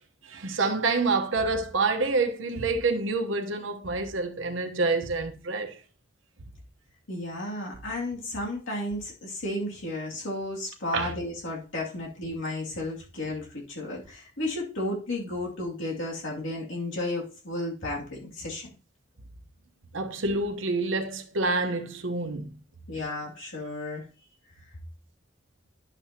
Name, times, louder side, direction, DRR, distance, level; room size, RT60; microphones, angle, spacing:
voice 1, 0.2-5.8 10.9-11.1 19.9-22.5, right 3 dB, 85° right, 1.0 m, -27 dB
voice 2, 7.1-18.7 22.9-24.0, left 1 dB, 85° left, 2.5 m, -33 dB
11.0 x 6.9 x 2.9 m
head